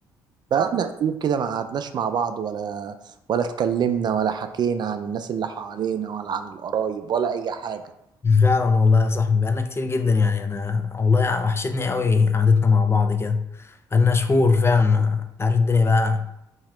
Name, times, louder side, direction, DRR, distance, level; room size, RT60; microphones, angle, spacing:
voice 1, 0.5-7.8, right 7 dB, 50° right, 9 dB, 0.4 m, -26 dB
voice 2, 8.2-16.3, left 4 dB, 25° left, 7 dB, 0.4 m, -20 dB
2.9 x 2.8 x 4.3 m, 0.80 s
supercardioid pair, 60°, 9 cm